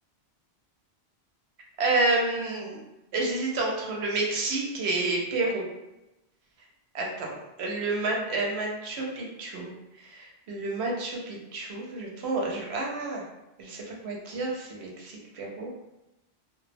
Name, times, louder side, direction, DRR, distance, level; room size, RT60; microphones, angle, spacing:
voice 1, 1.8-2.8 3.1-5.7 6.9-9.7 10.0-13.2 13.6-15.7, right 2 dB, 90° right, -1 dB, 0.9 m, -29 dB
2.3 x 2.0 x 3.2 m, 0.96 s
omnidirectional pair, 1.1 m